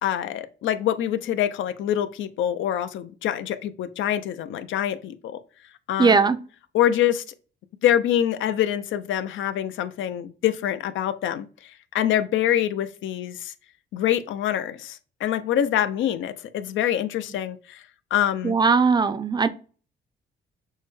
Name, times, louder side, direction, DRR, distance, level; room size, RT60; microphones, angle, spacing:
voice 1, 0.0-5.4 5.9-6.2 6.7-7.2 7.8-13.5 13.9-17.8 18.1-18.6, left 11 dB, 75° left, 0.5 m, -25 dB
voice 2, 6.0-6.4 18.4-19.5, right 5 dB, 20° right, 0.4 m, -19 dB
6.3 x 2.2 x 3.1 m
cardioid pair, 90°, 20 cm